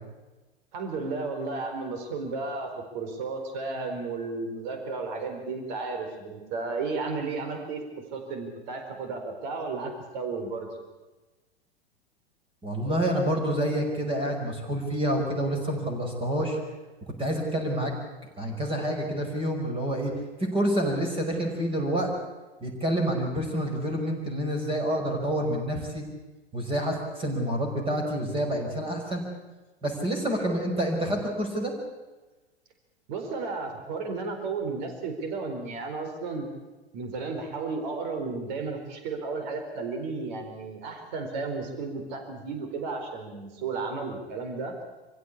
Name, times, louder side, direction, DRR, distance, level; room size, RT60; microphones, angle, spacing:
voice 1, 0.7-7.8 8.1-10.7 33.1-36.5 36.9-44.7, right 4 dB, 45° right, 5 dB, 4.5 m, -33 dB
voice 2, 12.6-16.6 17.2-17.9 18.4-20.1 20.4-22.1 22.6-26.0 26.5-29.2 29.8-31.7, right 1 dB, 15° right, 2 dB, 5.5 m, -28 dB
26.0 x 16.0 x 8.6 m, 1.2 s
figure-of-eight pair, 95°, 31 cm